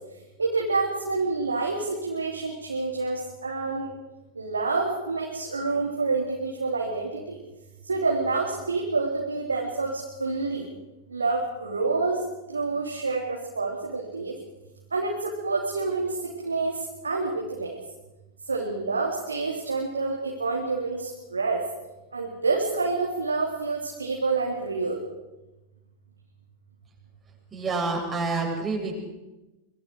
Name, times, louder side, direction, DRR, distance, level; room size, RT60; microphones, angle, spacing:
voice 1, 0.4-3.9 4.4-7.4 7.9-10.6 11.1-12.2 12.5-14.3 14.9-16.8 17.0-17.8 18.5-21.6 22.1-25.0, right 3 dB, 75° right, -2 dB, 3.6 m, -28 dB
voice 2, 27.5-29.0, right 3 dB, 15° right, -1 dB, 7.7 m, -28 dB
25.5 x 23.0 x 4.9 m, 1.0 s
figure-of-eight pair, 90°, 0 cm